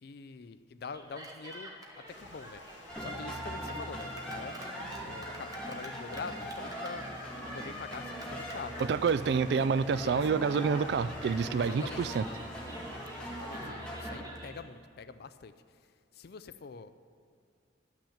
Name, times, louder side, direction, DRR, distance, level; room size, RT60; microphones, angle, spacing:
voice 1, 0.0-1.7 2.1-2.6 3.0-4.6 5.0-7.1 7.5-8.9 9.6-9.7 10.0-10.4 11.6-12.1 13.1-15.5 16.1-16.9, left 5 dB, 55° left, 12 dB, 0.4 m, -45 dB
Cheering, 0.9-14.6, right 1 dB, 20° right, 1.1 m, -47 dB
Water, 2.1-13.7, left 3 dB, 80° left, 0.8 m, -54 dB
sound 1, 2.9-14.2, equal, 5° left, 1.5 m, -41 dB
voice 2, 8.8-12.2, right 5 dB, 60° right, 15 dB, 0.3 m, -28 dB
11.5 x 6.0 x 7.1 m, 2.3 s
head